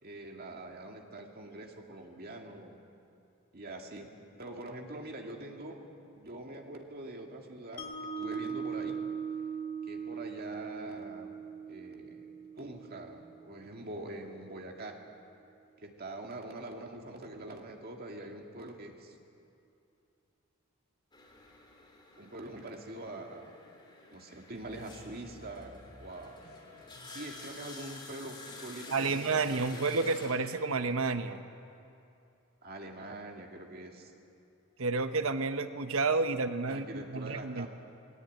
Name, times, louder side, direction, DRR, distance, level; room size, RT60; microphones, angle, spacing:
voice 1, 0.0-2.8 3.5-4.1 4.4-5.8 6.1-7.9 8.2-9.0 9.9-11.3 11.7-12.3 12.5-15.0 15.8-19.2 22.2-23.6 24.1-26.4 27.1-30.0 32.6-34.1 36.7-37.7, right 1 dB, 45° right, 2 dB, 2.2 m, -44 dB
Mallet percussion, 7.8-13.9, right 6 dB, 40° left, 3.4 m, -40 dB
sound 1, 21.1-31.3, left 2 dB, 20° left, 3.3 m, -51 dB
sound 2, 24.5-27.8, equal, 85° left, 6.0 m, -55 dB
voice 2, 28.9-31.5 34.8-37.7, right 3 dB, 65° right, 9 dB, 0.9 m, -30 dB
20.5 x 18.0 x 9.3 m, 2.6 s
head